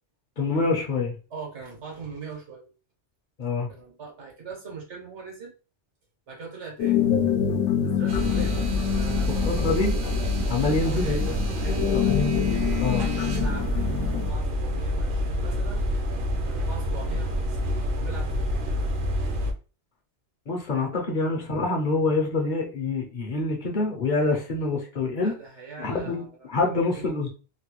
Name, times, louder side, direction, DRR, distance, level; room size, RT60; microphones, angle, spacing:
voice 1, 0.4-1.2 3.4-3.7 8.4-8.5 9.3-9.9 10.5-12.2 12.8-13.0 20.5-25.3 25.8-27.3, left 3 dB, 50° left, 1 dB, 0.7 m, -26 dB
voice 2, 1.3-2.7 3.7-5.5 6.3-7.1 7.8-9.7 10.6-12.1 12.8-15.9 16.4-18.9 20.7-21.0 25.2-27.3, right 5 dB, 85° right, -1 dB, 1.5 m, -42 dB
sound 1, 6.8-14.3, left 9 dB, 90° left, 0.9 m, -26 dB
sound 2, 8.1-19.5, equal, 60° right, 0.7 m, -27 dB
3.1 x 2.3 x 2.9 m, 0.35 s
omnidirectional pair, 1.2 m